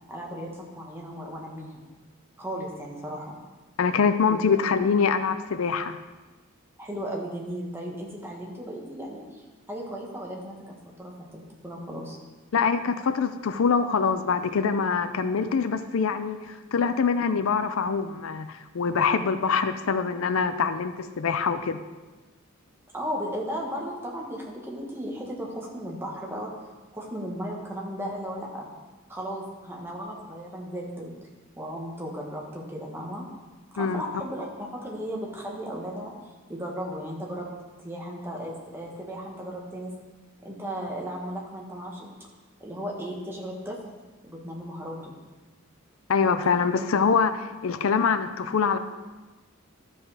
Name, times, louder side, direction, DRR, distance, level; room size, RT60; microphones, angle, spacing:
voice 1, 0.1-1.8 2.4-3.4 4.3-4.6 6.8-10.6 11.0-12.2 22.9-26.5 26.9-28.7 29.1-31.1 31.6-33.2 33.7-36.1 36.5-37.5 37.8-39.9 40.4-42.1 42.6-43.8 44.2-45.1, equal, 10° right, -2 dB, 1.4 m, -35 dB
voice 2, 3.8-6.0 12.5-21.8 33.8-34.0 46.1-48.8, left 5 dB, 75° left, 11 dB, 0.5 m, -24 dB
12.5 x 5.1 x 4.9 m, 1.2 s
head